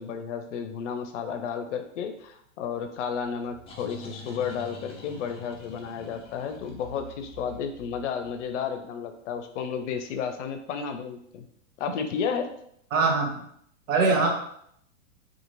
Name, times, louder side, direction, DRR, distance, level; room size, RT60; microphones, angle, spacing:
voice 1, 0.0-11.5 11.8-12.5, left 7 dB, 60° left, 7 dB, 0.6 m, -32 dB
sound 1, 3.4-8.7, left 2 dB, 15° left, 0.4 m, -46 dB
voice 2, 12.9-13.3 13.9-14.3, right 4 dB, 75° right, 1 dB, 0.8 m, -22 dB
2.8 x 2.5 x 2.5 m, 0.70 s
hypercardioid pair, 110°, 40 cm